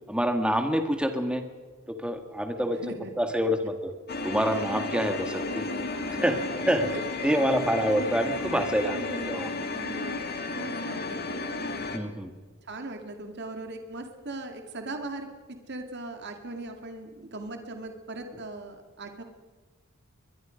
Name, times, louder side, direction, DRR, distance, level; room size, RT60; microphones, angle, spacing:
voice 1, 0.1-1.4 2.0-3.9 4.2-5.7 6.2-6.4 6.7-6.9 7.2-9.0 9.3-9.6 11.9-12.3, equal, 5° right, 6 dB, 1.7 m, -27 dB
voice 2, 2.6-3.1 5.7-6.6 6.9-7.0 8.8-11.8 12.7-15.3 15.7-19.2, right 2 dB, 55° right, 5 dB, 2.2 m, -40 dB
sound 1, 4.1-12.0, left 3 dB, 45° left, 2.1 m, -33 dB
22.5 x 22.5 x 5.2 m, 1.4 s
head